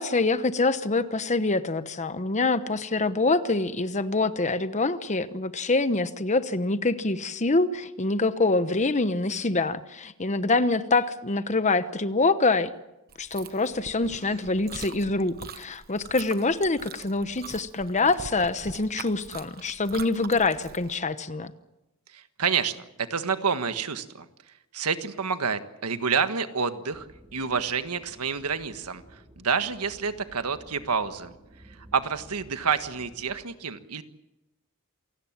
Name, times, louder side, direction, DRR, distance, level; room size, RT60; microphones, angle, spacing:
voice 1, 0.0-12.7 13.2-21.5, left 3 dB, 30° left, 12 dB, 1.0 m, -25 dB
Chewing mastication, 13.1-20.9, right 5 dB, 45° right, 1.1 m, -43 dB
voice 2, 22.1-24.2 24.7-27.1 27.3-31.3 31.7-34.0, right 6 dB, 90° right, 10 dB, 1.5 m, -28 dB
sound 1, 26.9-33.4, equal, 15° right, 2.8 m, -53 dB
27.5 x 18.0 x 7.5 m, 0.94 s
head